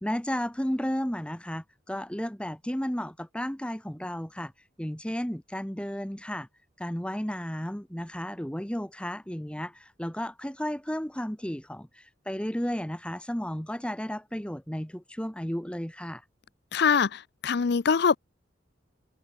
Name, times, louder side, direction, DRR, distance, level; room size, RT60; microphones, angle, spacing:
voice 1, 0.0-4.5 4.8-6.5 6.8-16.2, equal, 5° left, 1.1 m, -33 dB
voice 2, 16.7-18.2, left 6 dB, 60° left, 0.5 m, -23 dB
head